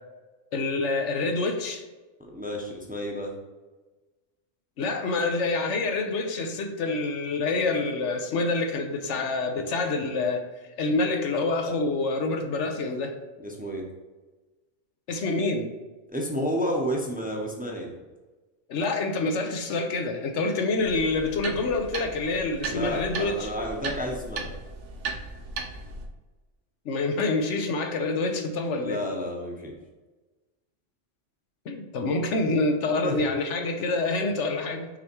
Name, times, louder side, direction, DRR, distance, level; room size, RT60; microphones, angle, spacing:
voice 1, 0.5-1.8 4.8-10.4 10.8-13.1 15.1-15.7 18.7-23.5 26.9-29.0 31.7-34.9, left 3 dB, 75° left, 5 dB, 1.1 m, -27 dB
voice 2, 2.2-3.3 13.4-13.9 16.1-18.0 22.7-24.5 28.8-29.7 33.0-33.3, equal, 10° right, -1 dB, 0.7 m, -31 dB
sound 1, 20.8-26.1, right 3 dB, 75° right, 1.1 m, -37 dB
6.2 x 3.5 x 4.4 m, 1.2 s
omnidirectional pair, 1.2 m